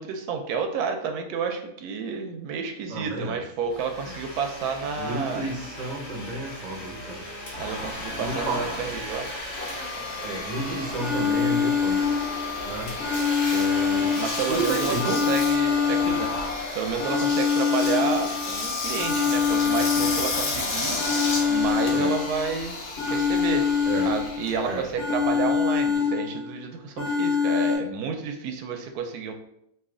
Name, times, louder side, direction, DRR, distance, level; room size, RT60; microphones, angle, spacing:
voice 1, 0.0-5.4 7.6-9.3 14.2-16.5 16.7-21.0 21.5-22.8 23.1-23.6 24.0-29.3, right 5 dB, 85° right, 4 dB, 1.1 m, -30 dB
voice 2, 2.9-3.4 5.0-7.2 8.1-8.6 10.2-12.2 12.6-12.9 13.5-14.2 14.5-15.4 21.9-22.2 23.8-24.1 24.6-24.9, right 2 dB, 45° right, -1 dB, 0.6 m, -31 dB
Domestic sounds home sounds, 3.6-16.2, left 1 dB, 60° left, 1.2 m, -38 dB
Engine, 7.5-26.0, left 3 dB, 90° left, 1.3 m, -32 dB
sound 1, 11.0-12.6 13.0-14.6 15.0-16.6 17.0-18.6 19.0-20.6 21.0-22.6 23.0-24.6 25.0-26.6 27.0-27.8, left 6 dB, 35° left, 1.4 m, -25 dB
3.1 x 2.7 x 3.6 m, 0.78 s
omnidirectional pair, 1.6 m